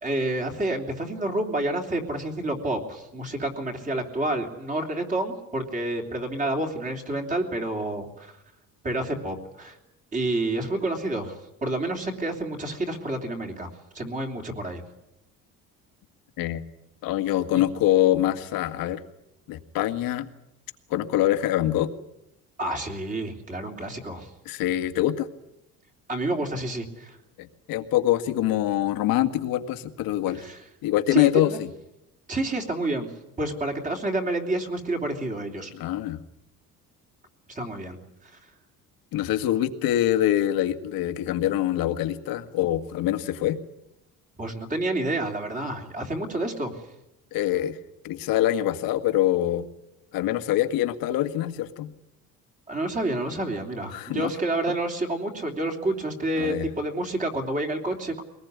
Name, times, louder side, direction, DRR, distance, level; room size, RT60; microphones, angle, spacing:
voice 1, 0.0-8.3 8.8-9.8 10.1-13.7 13.9-14.8 17.5-17.6 22.6-24.3 26.1-27.2 30.3-30.6 31.1-31.6 32.3-33.1 33.4-35.7 37.5-38.4 44.4-46.7 52.7-58.2, right 2 dB, 20° right, 3 dB, 3.2 m, -29 dB
voice 2, 17.0-19.0 19.5-20.3 20.9-21.9 24.5-25.3 27.4-30.5 30.8-31.7 35.7-36.2 39.1-43.6 47.3-47.8 48.0-49.6 50.1-51.9 53.9-54.3 56.4-56.7, left 13 dB, 85° left, 9 dB, 1.9 m, -24 dB
23.0 x 19.5 x 9.6 m, 0.87 s
cardioid pair, 170°, 34 cm